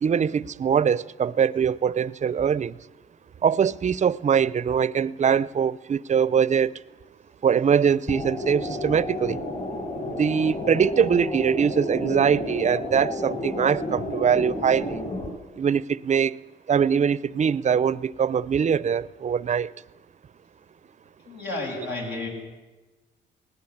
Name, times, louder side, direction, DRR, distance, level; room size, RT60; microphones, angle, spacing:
voice 1, 0.0-2.8 3.4-6.7 7.4-9.4 10.1-15.0 15.6-16.4 16.7-19.7, right 7 dB, 35° right, 0.6 m, -22 dB
sound 1, 8.1-15.3, left 1 dB, 40° left, 7.2 m, -31 dB
voice 2, 21.3-22.3, left 2 dB, 70° left, 7.7 m, -31 dB
20.0 x 19.0 x 8.6 m
cardioid pair, 90°, 20 cm